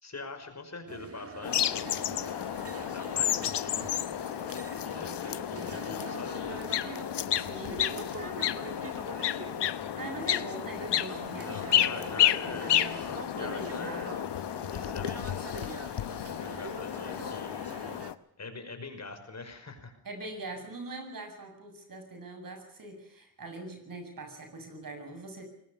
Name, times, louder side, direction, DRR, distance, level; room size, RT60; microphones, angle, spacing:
voice 1, 0.0-2.3 2.6-3.9 4.9-6.4 11.4-14.1 14.7-15.7 16.0-17.5 18.4-19.9, left 3 dB, 40° left, 8 dB, 5.4 m, -43 dB
sound 1, 0.9-18.1, right 4 dB, 35° right, 2.0 m, -44 dB
sound 2, 1.4-18.1, left 11 dB, 75° left, 1.1 m, -31 dB
voice 2, 7.3-8.6 10.0-14.2 20.0-25.4, right 2 dB, 50° right, 6 dB, 7.8 m, -43 dB
23.0 x 20.0 x 7.0 m, 0.78 s
cardioid pair, 80°, 42 cm